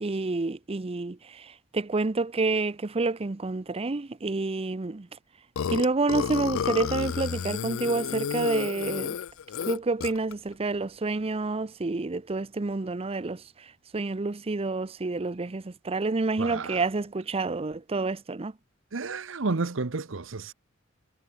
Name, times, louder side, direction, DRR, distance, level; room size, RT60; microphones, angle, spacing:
voice 1, 0.0-5.1 5.7-9.2 9.7-18.5, right 3 dB, 30° right, 0.6 m, -29 dB
Burping eructation, 5.6-10.3, left 7 dB, 70° left, 0.4 m, -31 dB
voice 2, 16.4-16.8 18.9-20.5, right 3 dB, 65° right, 0.9 m, -31 dB
head